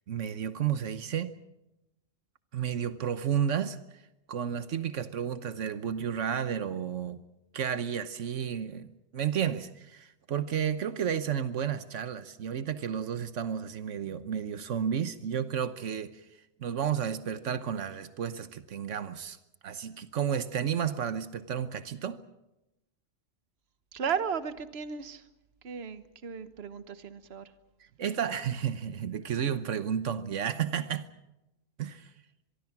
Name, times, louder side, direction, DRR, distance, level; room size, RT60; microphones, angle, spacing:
voice 1, 0.1-1.3 2.5-4.0 4.3-7.2 7.5-16.2 16.6-19.4 19.6-22.2 28.0-31.1 31.8-32.1, right 8 dB, 85° right, 12 dB, 1.3 m, -32 dB
voice 2, 23.9-25.2 25.6-27.5, right 7 dB, 60° right, 12 dB, 1.3 m, -35 dB
24.0 x 23.5 x 6.0 m, 0.92 s
omnidirectional pair, 1.2 m